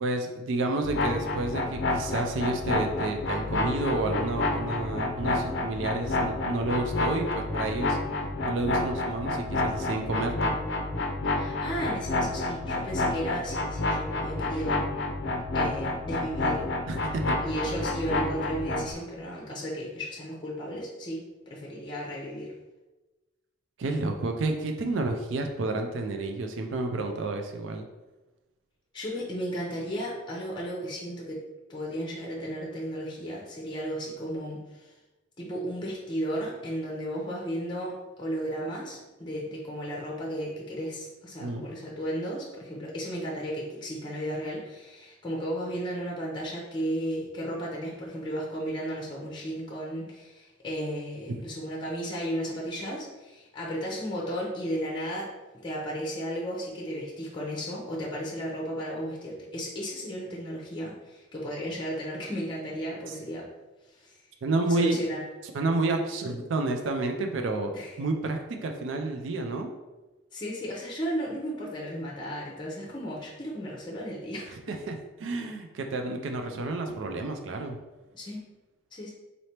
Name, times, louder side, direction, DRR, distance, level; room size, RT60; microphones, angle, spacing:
voice 1, 0.0-8.0 8.4-10.6 16.9-17.4 23.8-27.9 41.4-41.7 64.4-65.0 65.5-67.7 68.0-69.7 74.5-77.8, right 2 dB, 70° right, 4 dB, 0.4 m, -30 dB
sound 1, 0.8-18.9, left 2 dB, 60° left, 0.5 m, -29 dB
voice 2, 11.3-14.8 15.5-16.7 17.4-21.2 21.5-22.5 28.9-31.4 31.7-34.9 35.4-55.3 55.6-63.5 63.9-64.2 64.7-65.2 67.7-67.9 70.3-74.5 78.1-78.4 78.9-79.1, equal, 25° left, -3 dB, 0.7 m, -34 dB
4.0 x 3.2 x 2.8 m, 1.1 s
head